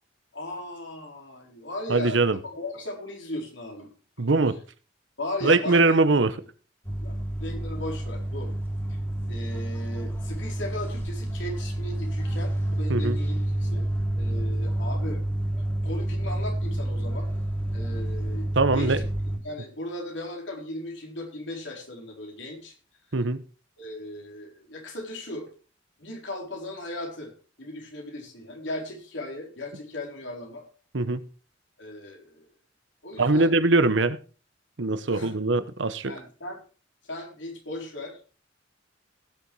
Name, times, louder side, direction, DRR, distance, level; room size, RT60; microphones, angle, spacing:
voice 1, 0.3-3.9 4.2-4.3 5.2-5.9 7.0-8.5 8.9-9.0 9.3-13.9 14.1-15.2 15.8-17.3 17.7-18.5 18.7-19.0 19.4-22.7 23.8-25.5 26.0-27.3 27.6-30.6 31.8-32.4 33.0-33.5 35.1-35.4 36.0-36.6 37.1-38.3, left 1 dB, 75° left, 4.3 m, -37 dB
voice 2, 1.9-2.4 4.2-4.6 5.4-6.3 12.9-13.2 18.5-19.0 23.1-23.4 30.9-31.2 33.2-34.2 34.8-36.1, right 3 dB, 75° right, 1.0 m, -22 dB
sound 1, 6.8-19.4, right 1 dB, 15° left, 2.9 m, -29 dB
17.0 x 6.9 x 4.7 m
head